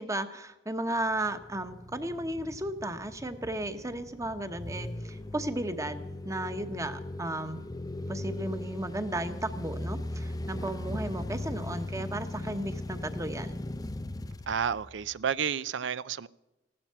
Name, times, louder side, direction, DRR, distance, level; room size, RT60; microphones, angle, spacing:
voice 1, 0.0-7.6 8.1-13.6, right 1 dB, 15° right, 1.0 m, -34 dB
sound 1, 1.0-15.3, left 1 dB, 20° left, 0.5 m, -39 dB
voice 2, 14.5-16.3, right 7 dB, 85° right, 0.5 m, -31 dB
16.0 x 12.0 x 5.7 m
head